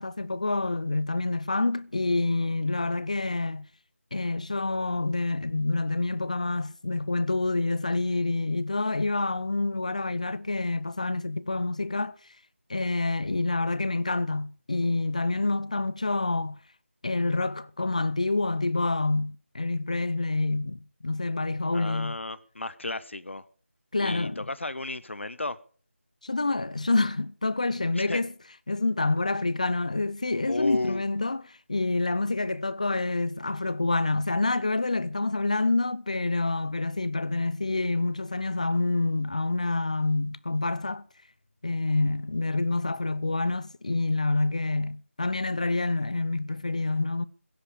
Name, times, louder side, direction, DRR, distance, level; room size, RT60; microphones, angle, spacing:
voice 1, 0.0-3.6 4.1-12.2 12.7-16.6 17.0-22.1 23.9-24.4 26.2-28.3 28.7-41.0 41.6-47.2, left 2 dB, 30° left, 0.6 m, -27 dB
voice 2, 21.7-23.5 24.0-25.6 27.9-28.2 30.5-31.0, left 2 dB, 60° left, 1.0 m, -33 dB
16.5 x 7.0 x 9.9 m
figure-of-eight pair, 175°, 7 cm